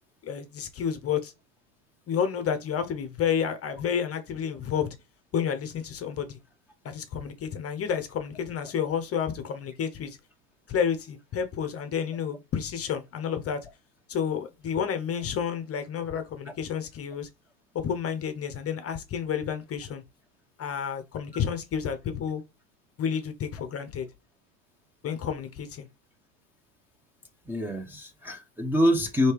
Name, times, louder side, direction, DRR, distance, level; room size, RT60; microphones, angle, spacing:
voice 1, 0.2-1.3 2.1-4.9 5.3-6.4 6.8-10.2 10.7-13.6 14.1-17.3 17.7-20.0 20.6-22.4 23.0-24.1 25.0-25.9, left 7 dB, 30° left, 0.8 m, -30 dB
voice 2, 27.5-29.3, equal, 5° right, 0.7 m, -25 dB
3.2 x 2.9 x 4.6 m
hypercardioid pair, 95°, 50 cm